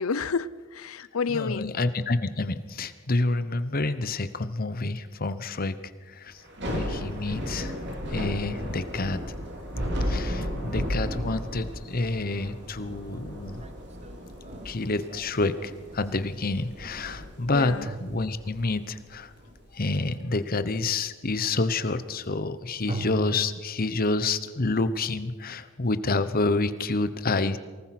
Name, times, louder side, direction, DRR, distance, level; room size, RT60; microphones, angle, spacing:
voice 1, 0.0-1.8 17.4-17.9, left 5 dB, 70° left, 0.6 m, -30 dB
voice 2, 1.3-5.8 6.1-6.4 6.7-7.8 8.1-9.2 10.0-13.6 14.6-19.3 19.7-27.6, left 3 dB, 40° left, 0.9 m, -28 dB
Thunder / Rain, 6.4-19.6, equal, 50° right, 3.6 m, -34 dB
sound 1, 11.5-11.6 12.5-16.1 17.8-19.0 22.9-23.5, right 2 dB, 30° right, 1.0 m, -37 dB
24.0 x 19.0 x 6.0 m
head